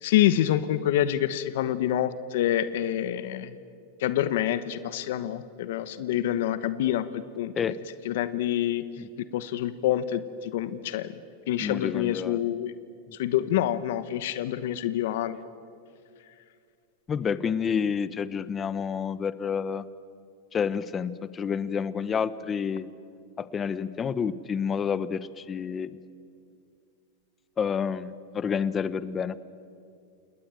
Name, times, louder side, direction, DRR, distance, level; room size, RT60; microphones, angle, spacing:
voice 1, 0.0-3.6 4.0-7.5 8.0-11.2 11.5-12.7 13.1-15.4, left 12 dB, 70° left, 13 dB, 1.0 m, -27 dB
voice 2, 11.6-12.4 17.1-19.9 20.5-22.9 23.4-26.0 27.6-29.4, left 7 dB, 20° left, 16 dB, 0.9 m, -29 dB
28.5 x 19.5 x 9.2 m, 2.4 s
supercardioid pair, 135°, 0 cm